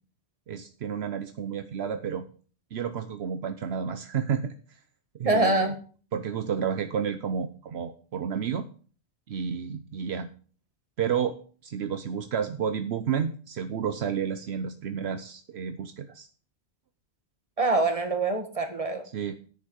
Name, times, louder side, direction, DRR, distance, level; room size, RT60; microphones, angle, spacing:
voice 1, 0.5-2.2 2.7-4.5 5.2-5.7 6.1-8.7 9.3-10.3 11.0-11.4 11.6-16.3 19.1-19.3, right 7 dB, 75° right, 9 dB, 1.0 m, -31 dB
voice 2, 5.2-5.8 17.6-19.0, right 2 dB, 30° right, 6 dB, 1.8 m, -24 dB
10.0 x 7.0 x 6.4 m, 0.40 s
omnidirectional pair, 1.1 m